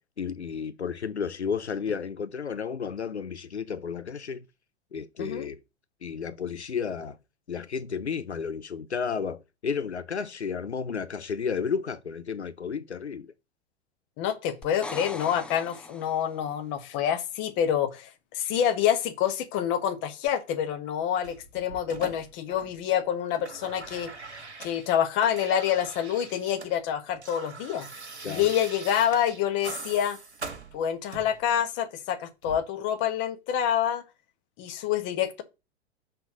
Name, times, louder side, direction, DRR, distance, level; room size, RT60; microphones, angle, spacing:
voice 1, 0.2-4.4 4.9-5.6 6.0-7.2 7.5-13.3 28.2-28.5, left 6 dB, 85° left, 0.5 m, -32 dB
voice 2, 5.2-5.5 14.2-24.1 24.6-27.9 28.3-30.2 30.7-34.0 34.6-35.4, left 9 dB, 35° left, 1.3 m, -27 dB
sound 1, 14.6-16.5 20.3-20.4, left 2 dB, 5° left, 0.5 m, -41 dB
sound 2, 21.2-22.9 23.2-26.7 27.0-31.4 32.4-32.6, right 3 dB, 80° right, 1.4 m, -42 dB
5.6 x 4.2 x 6.2 m
figure-of-eight pair, 95°, 33 cm